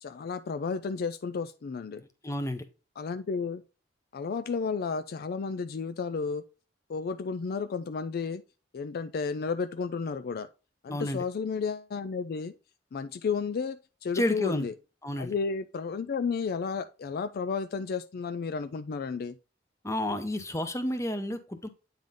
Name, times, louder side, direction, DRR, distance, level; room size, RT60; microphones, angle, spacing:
voice 1, 0.0-2.0 3.0-3.6 4.1-6.4 6.9-8.4 8.7-10.5 10.8-12.5 12.9-14.7 15.2-19.4, left 5 dB, 50° left, 0.4 m, -32 dB
voice 2, 2.2-2.6 10.9-11.2 14.1-14.7 15.0-15.3 19.8-21.7, left 1 dB, 15° left, 0.8 m, -30 dB
8.7 x 3.8 x 3.6 m
head